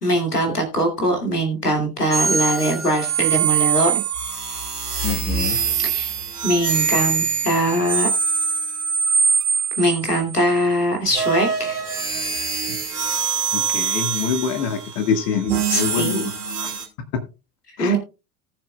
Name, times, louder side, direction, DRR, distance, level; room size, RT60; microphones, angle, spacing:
voice 1, 0.0-4.0 5.8-6.1 6.4-8.1 9.8-11.8 15.7-16.3 17.8-18.0, right 1 dB, 85° left, 3 dB, 2.4 m, -21 dB
sound 1, 2.1-10.4 11.1-16.8, right 6 dB, 80° right, 2.2 m, -23 dB
voice 2, 5.0-5.6 13.5-16.3 16.6-16.7 17.8-18.0, left 7 dB, 50° left, 7 dB, 1.7 m, -25 dB
18.5 x 7.0 x 2.3 m, 0.30 s
figure-of-eight pair, 70°, 45 cm